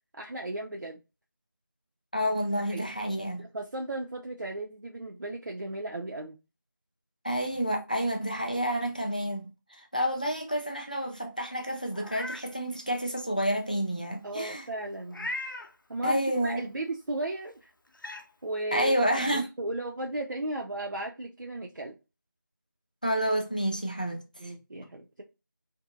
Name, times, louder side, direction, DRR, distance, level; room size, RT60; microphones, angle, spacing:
voice 1, 0.1-1.0 2.7-2.9 3.4-6.4 14.2-15.3 15.9-17.7 18.4-22.0 24.4-25.2, right 2 dB, 60° right, 0.5 m, -35 dB
voice 2, 2.1-3.4 7.2-9.4 9.7-14.7 16.0-16.6 18.7-19.5 23.0-24.2, equal, 25° left, 0.3 m, -29 dB
Meow, 11.9-12.4 12.9-13.0 15.1-15.7 17.3-17.4 17.9-18.2, left 1 dB, 70° left, 0.6 m, -37 dB
2.6 x 2.6 x 2.4 m
figure-of-eight pair, 170°, 11 cm